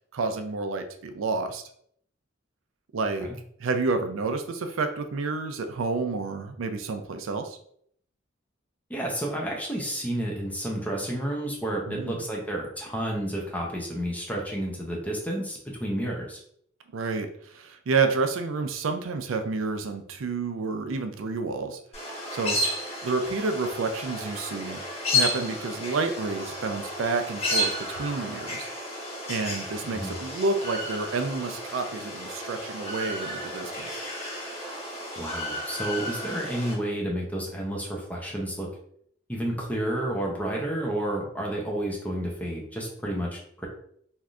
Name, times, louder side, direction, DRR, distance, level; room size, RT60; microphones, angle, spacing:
voice 1, 0.1-1.6 2.9-3.3 3.6-7.6 11.9-12.2 16.9-21.8 22.3-22.6 23.0-24.8 25.1-28.7 29.3-34.1, right 4 dB, 90° right, 7 dB, 0.4 m, -29 dB
voice 2, 8.9-16.4 29.9-30.1 35.2-38.7 39.3-43.7, right 1 dB, 10° left, -2 dB, 0.6 m, -31 dB
sound 1, 21.9-36.7, left 1 dB, 30° left, 1.0 m, -32 dB
3.3 x 2.6 x 2.4 m, 0.66 s
head